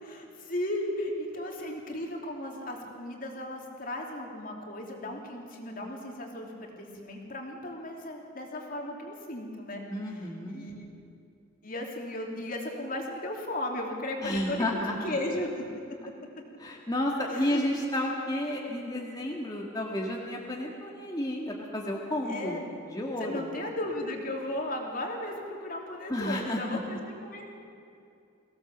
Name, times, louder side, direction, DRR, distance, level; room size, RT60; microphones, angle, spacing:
voice 1, 0.0-9.8 10.1-10.9 11.6-15.6 17.3-17.6 22.3-22.8 23.2-27.5, left 1 dB, 45° left, 1 dB, 3.0 m, -36 dB
voice 2, 9.9-10.7 14.2-15.0 16.6-22.6 22.9-23.5 26.1-26.8, left 1 dB, 20° left, -2 dB, 1.9 m, -31 dB
23.0 x 16.5 x 7.4 m, 2.5 s
head